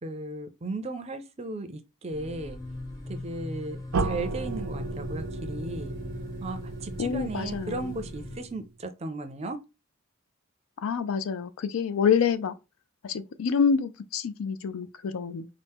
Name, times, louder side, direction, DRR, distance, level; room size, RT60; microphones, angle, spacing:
voice 1, 0.0-2.6 3.1-5.9 6.4-9.6, right 2 dB, 30° right, 0.4 m, -36 dB
sound 1, 2.1-8.4, left 2 dB, 15° left, 0.6 m, -40 dB
sound 2, 3.9-8.7, right 3 dB, 90° right, 0.5 m, -34 dB
voice 2, 7.0-7.9 10.8-12.5 13.0-15.5, left 6 dB, 80° left, 0.4 m, -27 dB
4.2 x 2.0 x 3.4 m
head